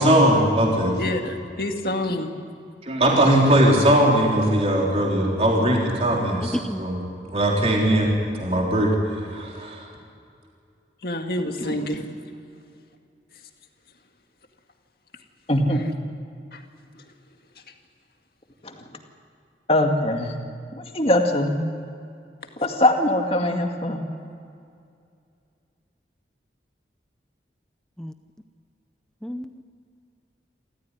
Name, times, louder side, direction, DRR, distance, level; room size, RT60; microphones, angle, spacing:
voice 1, 0.0-0.9 2.9-8.1 8.4-8.9 9.2-9.8 11.6-11.9, right 1 dB, 35° right, -2 dB, 3.8 m, -20 dB
voice 2, 1.0-2.3 11.0-12.0, left 1 dB, 55° left, 4 dB, 2.1 m, -27 dB
voice 3, 15.5-15.8 19.7-20.3 20.7-21.6 22.6-24.0, left 1 dB, 35° left, 3 dB, 2.2 m, -21 dB
voice 4, 29.2-29.6, equal, 5° left, 8 dB, 0.6 m, -31 dB
28.0 x 14.0 x 9.9 m, 2.4 s
head